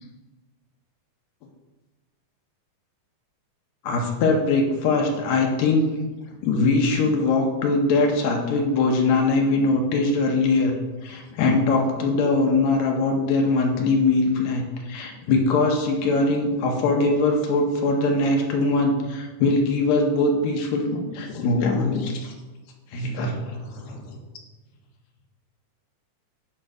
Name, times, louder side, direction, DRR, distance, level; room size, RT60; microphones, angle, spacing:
voice 1, 3.8-6.0 6.4-10.7 11.0-22.3 22.9-24.2, left 3 dB, 70° left, 2 dB, 1.9 m, -22 dB
8.7 x 3.2 x 4.7 m, 1.2 s
omnidirectional pair, 3.6 m